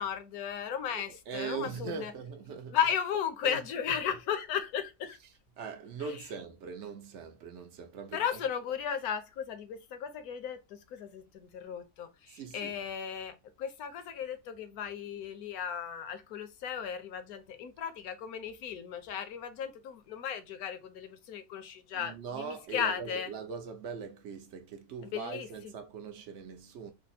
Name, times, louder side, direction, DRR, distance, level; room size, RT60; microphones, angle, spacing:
voice 1, 0.0-2.1 2.7-5.2 8.1-23.3 25.0-25.7, left 8 dB, 70° left, 1.1 m, -35 dB
voice 2, 0.9-2.8 3.4-3.6 5.6-8.4 12.3-12.7 21.9-26.9, right 6 dB, 65° right, 0.7 m, -41 dB
3.4 x 2.0 x 3.9 m
omnidirectional pair, 1.7 m